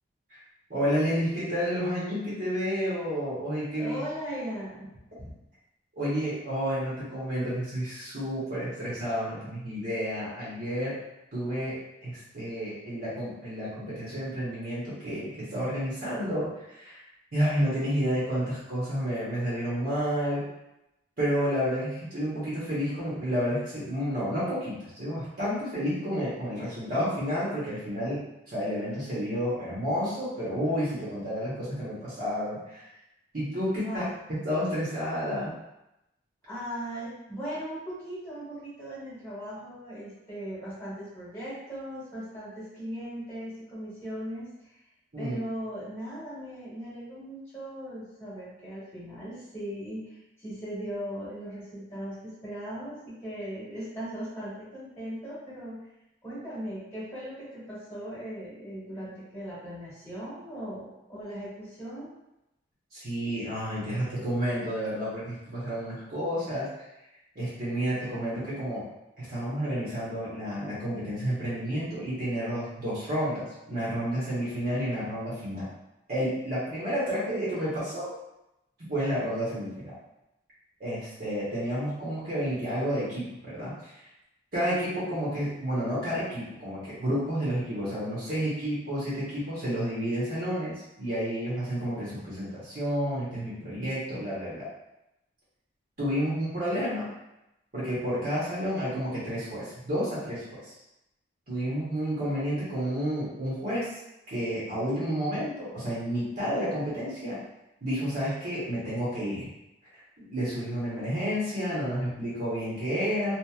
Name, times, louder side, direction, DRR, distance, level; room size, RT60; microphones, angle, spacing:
voice 1, 0.7-4.0 6.0-11.0 11.3-11.7 12.0-17.0 17.3-20.4 21.2-28.2 28.5-32.8 33.3-34.0 34.3-35.5 45.1-45.4 62.9-66.7 67.3-68.8 69.2-75.7 76.1-78.1 78.8-79.9 80.8-84.0 84.5-94.6 96.0-97.1 97.7-100.7 101.5-103.9 104.3-107.4 107.8-109.5 110.2-113.3, equal, 50° right, -9 dB, 1.0 m, -30 dB
voice 2, 3.8-4.9 5.2-5.3 33.8-34.1 36.5-44.5 45.2-55.8 56.2-62.1, equal, 15° left, -10 dB, 1.2 m, -38 dB
2.8 x 2.5 x 2.3 m, 0.90 s
head